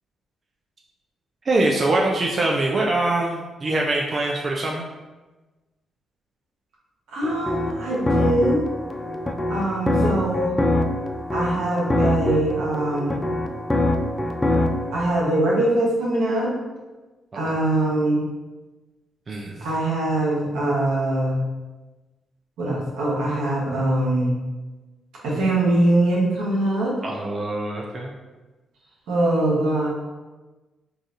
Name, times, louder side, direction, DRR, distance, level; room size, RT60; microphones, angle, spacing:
voice 1, 1.4-4.9 17.4-17.5 19.3-19.7 27.0-28.1, right 2 dB, 45° right, -2 dB, 0.4 m, -23 dB
voice 2, 7.1-8.6 9.5-10.6 11.3-13.2 14.9-16.6 17.3-18.2 19.6-21.4 22.6-24.3 25.2-26.9 29.1-29.9, right 1 dB, 85° right, -5 dB, 1.0 m, -22 dB
sound 1, 7.2-14.9, left 1 dB, 15° left, 0.4 m, -24 dB
3.9 x 2.5 x 2.5 m, 1.2 s
supercardioid pair, 55°, 0 cm